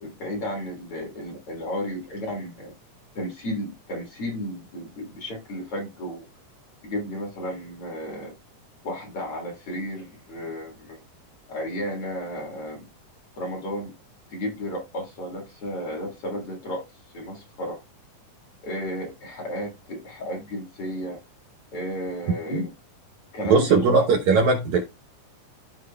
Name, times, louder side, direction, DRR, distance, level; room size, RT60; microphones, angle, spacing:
voice 1, 0.0-2.7 3.1-6.3 6.8-8.3 8.8-11.0 11.5-12.9 13.3-13.9 14.3-16.9 17.1-17.8 18.6-21.2 21.7-22.7 23.3-23.9, equal, 45° left, 2.2 m, -33 dB
voice 2, 23.5-24.8, right 4 dB, 70° right, 1.9 m, -19 dB
13.5 x 4.7 x 2.2 m
omnidirectional pair, 4.0 m